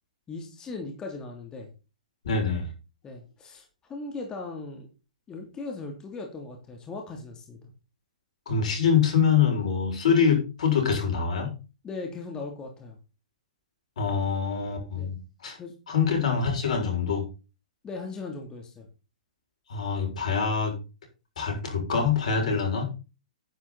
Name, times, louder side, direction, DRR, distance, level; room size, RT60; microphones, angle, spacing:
voice 1, 0.3-1.7 3.0-4.9 5.3-7.7 11.8-13.0 14.9-15.1 15.6-16.0 17.8-18.9, left 3 dB, 20° left, 2 dB, 2.9 m, -38 dB
voice 2, 2.2-2.7 8.5-11.5 14.0-15.2 15.4-15.6 15.9-17.2 19.7-20.8 21.4-22.8, left 6 dB, 65° left, 3 dB, 6.3 m, -24 dB
10.5 x 10.5 x 4.2 m, 0.31 s
hypercardioid pair, 125°, 4 cm